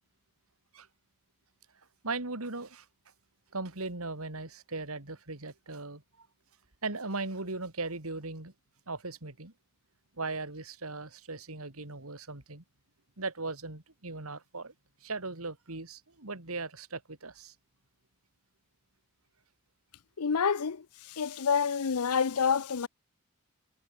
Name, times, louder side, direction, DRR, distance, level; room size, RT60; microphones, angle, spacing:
voice 1, 2.0-2.9 3.5-6.3 6.8-8.5 8.9-9.5 10.2-12.6 13.2-14.7 15.0-17.5, right 3 dB, 75° right, 2.7 m, -38 dB
voice 2, 20.2-22.9, left 6 dB, 90° left, 0.7 m, -28 dB
head